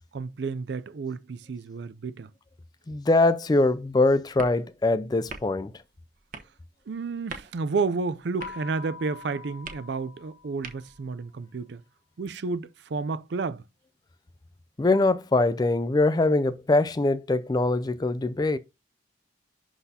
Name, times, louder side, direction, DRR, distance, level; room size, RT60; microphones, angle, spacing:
voice 1, 0.1-2.3 6.9-11.8 12.2-13.6, right 4 dB, 60° right, 0.4 m, -31 dB
voice 2, 2.9-5.7 14.8-18.6, left 2 dB, 20° left, 0.3 m, -23 dB
sound 1, 3.6-11.2, right 4 dB, 45° right, 1.0 m, -47 dB
sound 2, 8.4-11.1, left 6 dB, 55° left, 0.8 m, -45 dB
11.0 x 4.0 x 2.8 m
head